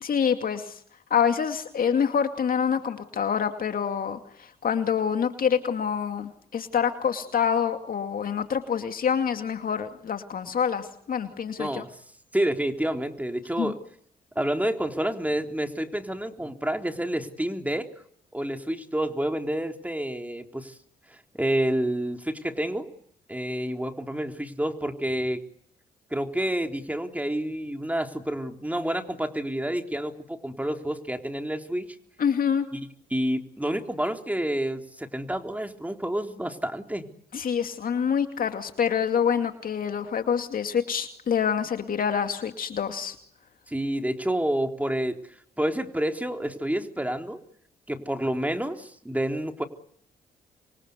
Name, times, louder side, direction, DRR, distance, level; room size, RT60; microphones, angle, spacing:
voice 1, 0.0-0.8 1.1-11.8 13.6-13.7 32.2-32.7 37.3-43.2, left 7 dB, 55° left, 7 dB, 2.4 m, -26 dB
voice 2, 11.6-11.9 12.3-13.8 14.4-17.9 18.3-20.7 21.3-22.9 23.3-25.4 26.1-32.0 32.7-32.8 33.1-37.1 43.7-45.2 45.6-47.4 47.9-49.6, right 1 dB, 10° right, 4 dB, 3.8 m, -29 dB
27.5 x 23.5 x 8.3 m, 0.67 s
hypercardioid pair, 45°, 17 cm